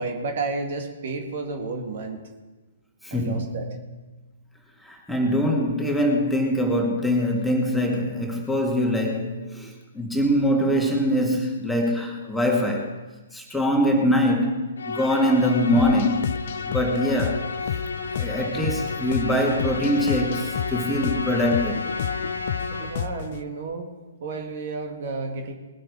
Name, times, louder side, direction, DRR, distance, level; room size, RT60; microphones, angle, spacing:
voice 1, 0.0-2.2 3.1-3.7 22.7-23.9 24.2-25.5, right 3 dB, 55° right, 4 dB, 2.4 m, -31 dB
voice 2, 3.0-3.6 4.8-12.9 13.3-16.3 16.7-17.8 18.1-21.8, equal, 5° left, -1 dB, 2.2 m, -23 dB
Musical instrument, 14.8-23.3, left 4 dB, 75° left, 1.1 m, -32 dB
sound 1, 15.8-23.4, left 9 dB, 50° left, 0.7 m, -32 dB
20.5 x 9.0 x 4.9 m, 1.2 s
figure-of-eight pair, 125°, 0 cm